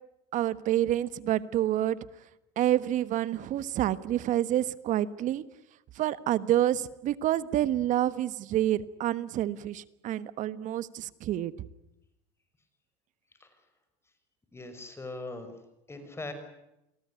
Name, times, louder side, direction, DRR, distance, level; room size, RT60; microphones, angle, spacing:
voice 1, 0.3-2.0 2.6-5.4 5.9-11.5, right 12 dB, 50° right, 16 dB, 1.3 m, -28 dB
voice 2, 14.5-15.5 15.9-16.3, left 2 dB, 15° left, 9 dB, 5.7 m, -40 dB
28.5 x 19.0 x 9.9 m, 0.87 s
supercardioid pair, 100°, 16 cm